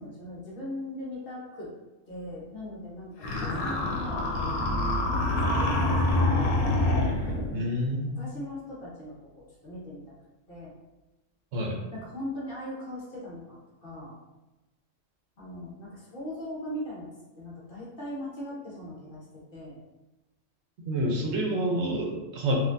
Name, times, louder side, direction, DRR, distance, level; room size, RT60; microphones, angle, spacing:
voice 1, 0.0-1.7 2.0-4.3 4.9-6.5 7.2-7.6 8.2-10.0 10.5-10.7 11.9-14.1 15.4-17.1 17.4-19.2 19.5-19.8, left 1 dB, 45° left, -6 dB, 1.1 m, -40 dB
sound 1, 3.2-7.6, left 2 dB, 85° left, 1.0 m, -26 dB
voice 2, 7.5-8.2 11.5-11.8 20.9-22.5, right 1 dB, 65° right, -1 dB, 0.9 m, -28 dB
4.0 x 2.6 x 2.6 m, 1.1 s
omnidirectional pair, 1.3 m